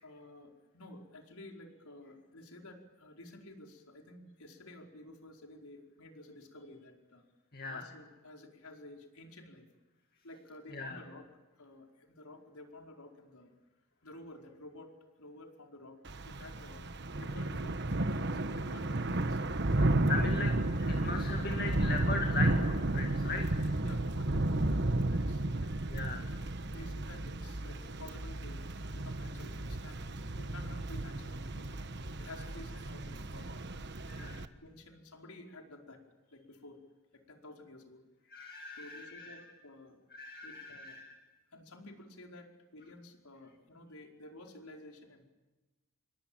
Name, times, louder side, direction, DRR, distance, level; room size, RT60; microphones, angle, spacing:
voice 1, 0.0-7.2 7.6-9.7 10.2-11.2 11.6-13.5 14.0-14.9 15.2-16.8 17.2-19.4 19.6-19.9 23.8-26.2 26.7-28.6 28.9-31.7 32.2-33.5 34.2-34.3 34.6-36.0 36.3-36.8 37.1-38.1 38.8-40.0 40.4-41.0 41.5-45.2, left 2 dB, 80° left, 2 dB, 4.9 m, -52 dB
voice 2, 7.5-7.8 10.7-11.0 19.8-23.5 25.9-26.2 34.1-34.4 38.3-39.3 40.1-41.1, left 3 dB, 45° left, 4 dB, 2.3 m, -39 dB
Thunder / Rain, 16.1-34.5, right 2 dB, 50° right, 1.3 m, -33 dB
28.0 x 24.0 x 8.9 m, 1.1 s
head